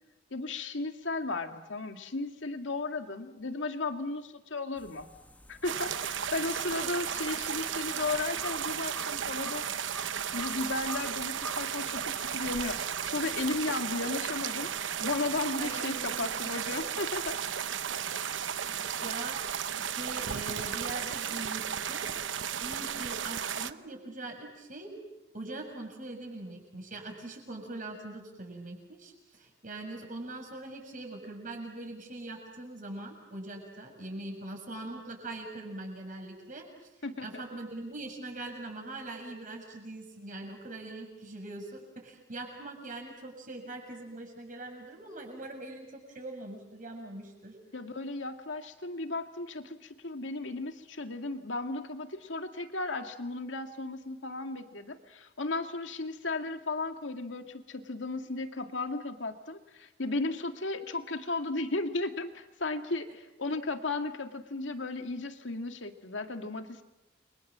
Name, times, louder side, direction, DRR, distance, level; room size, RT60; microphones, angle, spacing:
voice 1, 0.3-5.1 5.5-9.7 10.3-17.4 37.0-37.4 47.7-66.8, left 3 dB, 85° left, 6 dB, 2.1 m, -35 dB
sound 1, 4.8-13.7, left 2 dB, 10° left, 1.0 m, -49 dB
sound 2, 5.6-23.7, right 8 dB, 85° right, 0.9 m, -34 dB
voice 2, 15.6-16.5 18.5-19.5 19.8-22.1 22.6-24.9 25.3-36.7 37.2-47.6, right 2 dB, 45° right, 2 dB, 7.1 m, -42 dB
29.5 x 24.0 x 7.5 m, 0.97 s
head